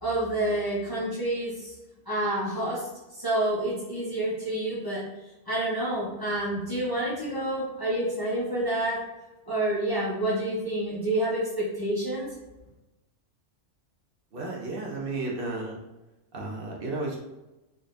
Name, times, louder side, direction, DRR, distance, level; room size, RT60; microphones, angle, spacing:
voice 1, 0.0-1.7 2.0-5.0 5.5-9.0 9.5-12.3, right 1 dB, 20° left, -9 dB, 1.1 m, -28 dB
voice 2, 14.3-15.8 16.3-17.2, right 2 dB, 55° right, -2 dB, 1.1 m, -33 dB
3.8 x 3.3 x 2.6 m, 1.0 s
omnidirectional pair, 1.2 m